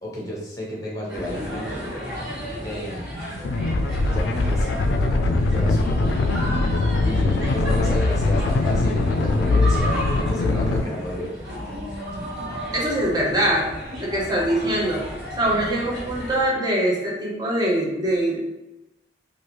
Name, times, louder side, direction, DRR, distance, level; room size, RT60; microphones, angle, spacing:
voice 1, 0.0-1.8 2.6-3.0 4.1-6.2 7.0-11.3, left 1 dB, 20° left, -3 dB, 0.8 m, -32 dB
sound 1, 1.1-16.5, equal, 75° right, 1.4 m, -33 dB
sound 2, 3.4-10.8, left 2 dB, 85° left, 0.3 m, -21 dB
voice 2, 12.7-13.7 14.0-15.0 15.4-18.4, right 1 dB, 20° right, -4 dB, 0.7 m, -23 dB
3.1 x 2.4 x 2.9 m, 0.98 s
head